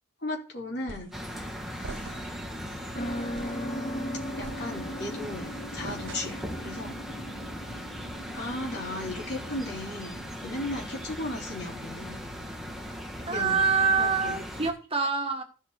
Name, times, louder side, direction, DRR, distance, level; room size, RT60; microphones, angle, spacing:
voice 1, 0.2-1.1 1.8-2.3 2.9-7.0 8.3-12.2 13.3-13.6 14.0-14.4, left 1 dB, 60° left, 3.5 m, -36 dB
sound 1, 0.9-1.3 1.8-2.4 2.8-3.0 3.3-3.7 4.4-5.1 5.8-6.6, right 3 dB, 85° right, 0.7 m, -43 dB
sound 2, 1.1-14.7, equal, ahead, 1.6 m, -39 dB
sound 3, 2.9-10.4, equal, 35° left, 0.7 m, -41 dB
voice 2, 13.2-15.4, right 5 dB, 30° right, 1.6 m, -25 dB
15.0 x 5.7 x 3.8 m
head